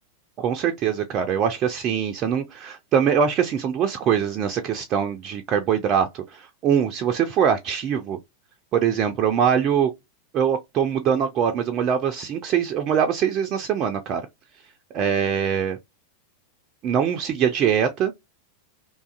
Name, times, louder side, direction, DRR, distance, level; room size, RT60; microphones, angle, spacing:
voice 1, 0.4-8.2 8.7-9.9 10.3-14.2 14.9-15.8 16.8-18.1, right 8 dB, 35° right, 0.3 m, -23 dB
2.5 x 2.3 x 2.3 m
figure-of-eight pair, 90°, 0 cm